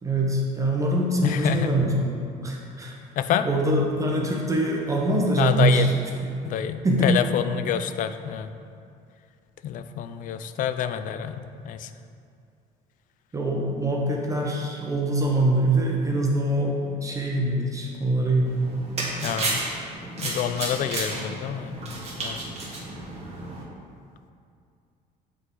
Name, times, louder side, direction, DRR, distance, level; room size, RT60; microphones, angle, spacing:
voice 1, 0.0-3.0 3.4-5.9 6.8-7.2 13.3-18.8, right 1 dB, 20° right, -1 dB, 0.8 m, -24 dB
voice 2, 1.2-1.8 3.2-3.5 5.4-5.9 6.4-8.5 9.6-11.9 19.2-19.6 20.2-22.4, left 9 dB, 55° left, 10 dB, 0.4 m, -27 dB
sound 1, 18.5-23.6, right 2 dB, 40° right, 1.5 m, -32 dB
8.0 x 3.7 x 3.9 m, 2.4 s
cardioid pair, 115°, 16 cm